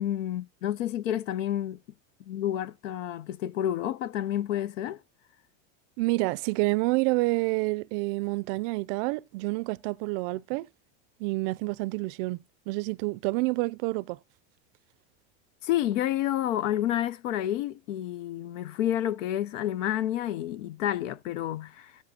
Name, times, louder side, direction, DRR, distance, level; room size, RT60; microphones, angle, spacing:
voice 1, 0.0-1.8 2.3-5.0 15.6-21.9, left 12 dB, 75° left, 0.8 m, -29 dB
voice 2, 6.0-10.7 11.2-12.4 12.7-14.2, right 23 dB, 50° right, 0.5 m, -28 dB
16.0 x 7.3 x 2.8 m
supercardioid pair, 145°, 38 cm